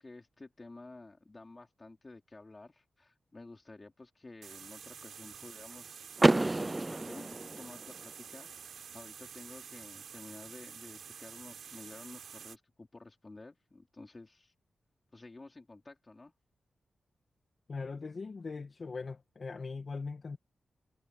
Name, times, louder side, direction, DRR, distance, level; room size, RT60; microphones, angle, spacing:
voice 1, 0.0-6.1 6.4-14.5 15.1-16.3, left 2 dB, 30° left, 4.8 m, -52 dB
sound 1, 4.4-12.6, right 7 dB, 90° right, 4.2 m, -49 dB
Car / Door, 6.2-8.1, right 2 dB, 20° right, 0.6 m, -29 dB
voice 2, 17.7-20.4, left 4 dB, 50° left, 2.1 m, -40 dB
cardioid pair, 80°, 0 cm